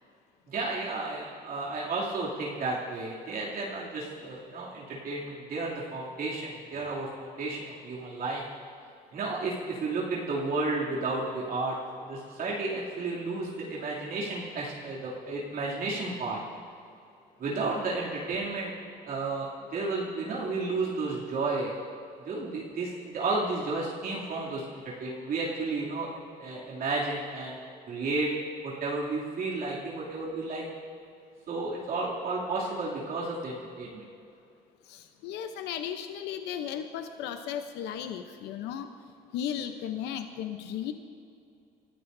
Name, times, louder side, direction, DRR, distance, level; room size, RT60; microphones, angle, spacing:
voice 1, 0.5-8.4 9.1-16.4 17.4-18.7 19.1-21.7 22.2-27.6 27.9-28.3 28.6-30.6 31.5-34.1, right 3 dB, 55° right, -5 dB, 2.8 m, -32 dB
voice 2, 34.9-38.9 39.3-40.9, left 9 dB, 85° left, 7 dB, 0.9 m, -35 dB
28.0 x 14.0 x 2.7 m, 2.5 s
cardioid pair, 110°, 17 cm